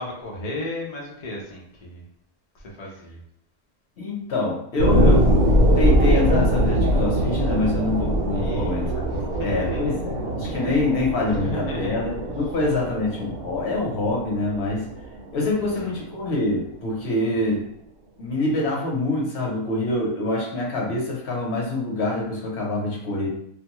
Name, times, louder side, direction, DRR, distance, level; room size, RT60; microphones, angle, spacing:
voice 1, 0.0-2.0 2.5-3.2 8.3-10.0 10.4-10.5 11.3-11.9 15.6-15.9, left 1 dB, 75° left, -2 dB, 0.3 m, -34 dB
voice 2, 4.0-5.3 5.8-9.0 9.4-14.8 15.3-17.6 18.2-23.3, left 2 dB, 55° left, -2 dB, 0.9 m, -25 dB
sound 1, 4.8-15.8 16.3-16.4, equal, 50° right, 0.7 m, -22 dB
2.6 x 2.2 x 2.9 m, 0.69 s
omnidirectional pair, 1.5 m